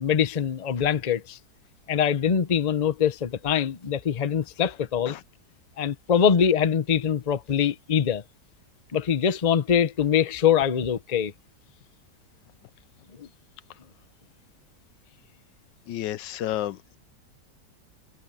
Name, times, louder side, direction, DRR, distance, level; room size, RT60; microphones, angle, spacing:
voice 1, 0.0-1.4 1.9-5.2 5.8-8.2 8.9-11.3 13.2-13.3, left 8 dB, 35° left, 0.7 m, -23 dB
voice 2, 15.9-16.8, left 12 dB, 90° left, 1.4 m, -31 dB
omnidirectional pair, 1.9 m